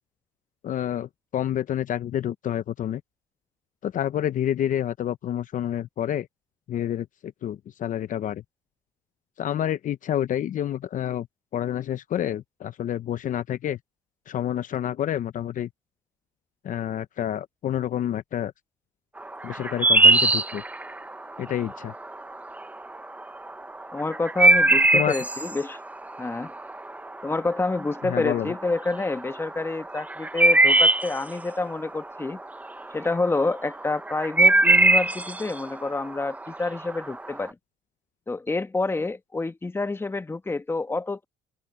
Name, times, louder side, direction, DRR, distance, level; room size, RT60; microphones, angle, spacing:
voice 1, 0.6-3.0 3.8-6.3 6.7-8.4 9.4-11.3 11.5-13.8 14.3-15.7 16.6-18.5 19.4-20.6 21.4-21.9 24.9-25.1 28.0-28.5, left 10 dB, 50° left, 0.7 m, -28 dB
sound 1, 19.2-37.5, right 2 dB, 10° right, 0.7 m, -22 dB
voice 2, 23.9-25.8 26.2-26.5 27.2-32.4 32.9-37.5 38.3-41.2, left 3 dB, 15° left, 1.1 m, -28 dB
open air
cardioid pair, 110°, 17 cm